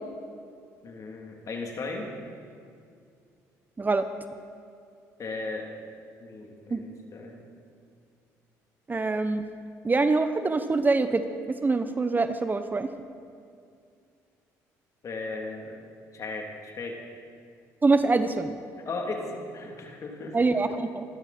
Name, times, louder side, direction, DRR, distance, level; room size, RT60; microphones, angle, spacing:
voice 1, 0.8-2.1 5.2-5.7 6.2-7.4 15.0-15.8 16.1-17.0 18.8-20.4, left 3 dB, 50° left, 1 dB, 3.2 m, -36 dB
voice 2, 8.9-9.5 9.8-12.9 17.8-18.6 20.3-21.0, right 3 dB, 25° right, 10 dB, 0.9 m, -24 dB
26.5 x 12.5 x 4.4 m, 2.3 s
supercardioid pair, 75°, 7 cm